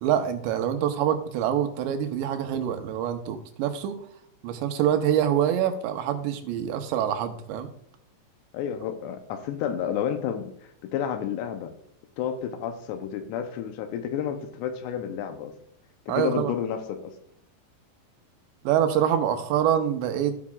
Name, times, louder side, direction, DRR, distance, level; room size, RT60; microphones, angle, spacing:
voice 1, 0.0-4.0 4.4-7.7 16.1-16.5 18.6-20.4, right 10 dB, 85° right, 7 dB, 3.0 m, -25 dB
voice 2, 8.5-10.5 10.8-11.7 12.2-15.5 16.2-17.1, left 8 dB, 80° left, 6 dB, 2.8 m, -30 dB
16.5 x 5.8 x 2.4 m, 0.69 s
omnidirectional pair, 5.0 m